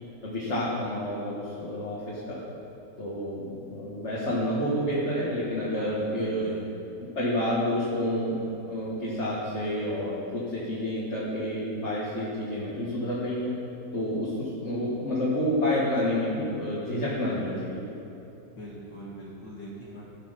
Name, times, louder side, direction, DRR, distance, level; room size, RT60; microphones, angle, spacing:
voice 1, 0.0-2.4 3.0-6.5 7.0-8.4 8.7-13.5 13.9-17.9, left 1 dB, 40° left, -8 dB, 2.0 m, -29 dB
voice 2, 5.7-6.6 18.6-20.0, right 1 dB, 75° left, -7 dB, 2.5 m, -42 dB
17.0 x 6.0 x 5.8 m, 2.9 s
omnidirectional pair, 2.0 m